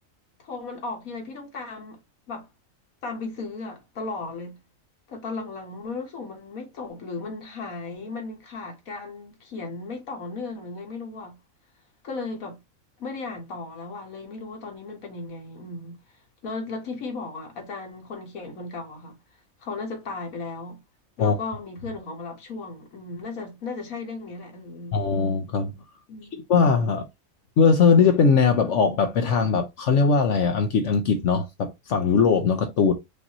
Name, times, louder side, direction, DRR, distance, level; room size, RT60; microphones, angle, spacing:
voice 1, 0.4-2.0 2.3-2.5 3.0-4.6 5.1-11.4 12.0-12.6 13.0-16.0 16.4-19.2 19.6-20.8 21.2-25.1 26.1-26.4, left 3 dB, 90° left, 1.7 m, -35 dB
voice 2, 24.9-25.7 26.5-27.1 27.6-32.9, left 5 dB, 65° left, 1.0 m, -20 dB
5.2 x 2.7 x 2.9 m
omnidirectional pair, 1.4 m